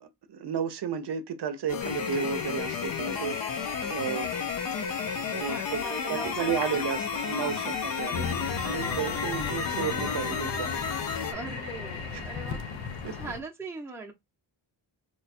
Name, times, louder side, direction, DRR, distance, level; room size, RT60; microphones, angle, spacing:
voice 1, 0.0-3.4 3.9-4.3 5.3-5.8 6.1-10.8 13.0-13.1, right 7 dB, 65° right, 0.6 m, -33 dB
sound 1, 1.7-11.3, left 7 dB, 55° left, 0.5 m, -33 dB
Toilet flush, 1.8-13.3, left 2 dB, 70° left, 1.3 m, -38 dB
voice 2, 5.4-6.9 7.3-7.7 11.3-12.7 13.1-14.1, right 3 dB, 5° right, 0.6 m, -40 dB
sound 2, 8.1-13.4, left 5 dB, 85° left, 0.8 m, -36 dB
3.0 x 2.3 x 4.1 m
wide cardioid pair, 175°, 44 cm